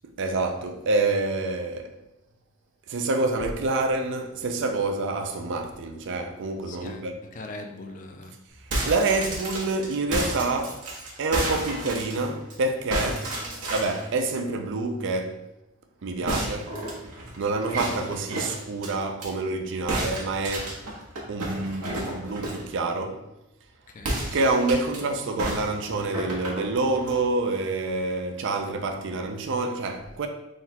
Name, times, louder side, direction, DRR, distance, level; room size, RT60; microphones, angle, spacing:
voice 1, 0.2-1.9 2.9-7.2 8.9-10.8 11.2-13.4 13.7-15.4 16.0-16.7 17.4-20.8 21.3-23.2 24.3-30.3, right 3 dB, 55° right, 0.4 m, -27 dB
voice 2, 6.7-8.5 16.2-16.5 23.9-24.2, left 2 dB, 35° left, 0.3 m, -41 dB
sound 1, 8.5-12.5 12.9-14.1 16.3-19.3 19.9-22.7 24.0-25.0 25.4-27.2, right 1 dB, 85° right, 1.1 m, -31 dB
3.8 x 2.2 x 4.2 m
head